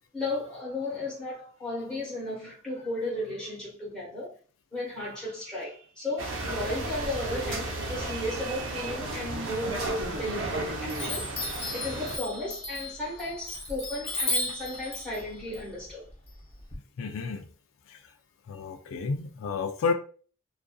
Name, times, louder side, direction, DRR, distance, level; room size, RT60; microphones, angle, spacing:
voice 1, 0.1-4.3 4.7-11.2 11.7-16.0, left 1 dB, 5° left, 1.1 m, -34 dB
sound 1, 6.2-12.2, right 2 dB, 75° right, 0.6 m, -34 dB
Chime, 9.9-10.5 10.9-16.8, left 2 dB, 30° left, 0.7 m, -35 dB
voice 2, 17.0-17.5 17.9-18.0 18.5-19.9, left 4 dB, 90° left, 0.4 m, -31 dB
2.5 x 2.4 x 2.2 m
head